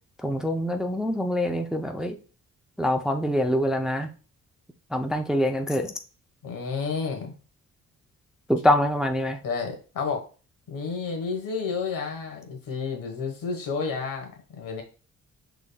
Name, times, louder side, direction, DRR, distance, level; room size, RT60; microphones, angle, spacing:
voice 1, 0.2-2.2 2.8-4.1 4.9-5.9 8.5-9.4, left 1 dB, ahead, 0.4 m, -25 dB
voice 2, 6.4-7.3 9.4-10.2 10.7-14.8, left 5 dB, 75° left, 1.3 m, -31 dB
5.0 x 3.6 x 2.2 m
cardioid pair, 85°, 33 cm